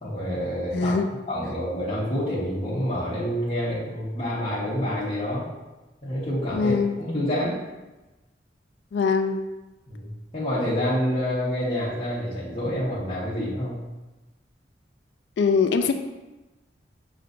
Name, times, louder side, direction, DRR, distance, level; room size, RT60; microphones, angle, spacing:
voice 1, 0.0-0.9 1.3-5.5 6.0-7.6 9.9-13.8, equal, 30° left, -10 dB, 1.0 m, -28 dB
voice 2, 0.7-1.1 6.5-7.0 8.9-9.4 15.4-15.9, left 5 dB, 70° left, 7 dB, 0.3 m, -22 dB
6.6 x 3.1 x 2.5 m, 1.1 s
head